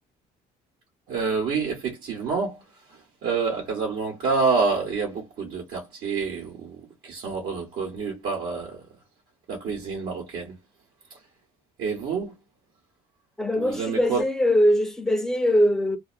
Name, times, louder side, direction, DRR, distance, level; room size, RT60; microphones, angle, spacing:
voice 1, 1.1-2.6 2.9-8.8 9.5-10.5 11.8-12.3 13.5-14.2, right 4 dB, 70° right, 1.2 m, -28 dB
voice 2, 13.4-16.0, equal, 5° left, 0.7 m, -21 dB
2.6 x 2.0 x 2.4 m
cardioid pair, 110°, 17 cm